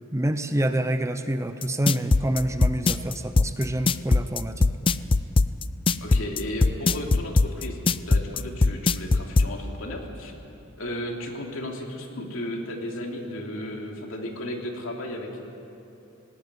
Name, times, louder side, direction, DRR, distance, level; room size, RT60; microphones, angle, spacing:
voice 1, 0.1-4.7, right 1 dB, 15° right, 9 dB, 0.7 m, -27 dB
sound 1, 1.6-9.5, left 3 dB, 25° left, 0.4 m, -20 dB
voice 2, 6.0-10.3 10.8-15.5, left 1 dB, 65° left, 1 dB, 2.8 m, -34 dB
18.5 x 18.0 x 9.5 m, 2.8 s
head